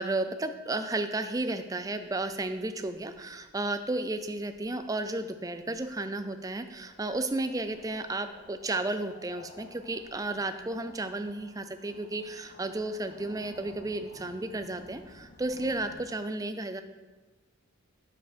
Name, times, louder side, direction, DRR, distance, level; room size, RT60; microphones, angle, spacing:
voice 1, 0.0-16.8, right 2 dB, 15° right, 9 dB, 0.4 m, -33 dB
sound 1, 1.4-16.0, left 2 dB, 35° left, 1.2 m, -55 dB
9.3 x 7.0 x 4.4 m, 1.2 s
head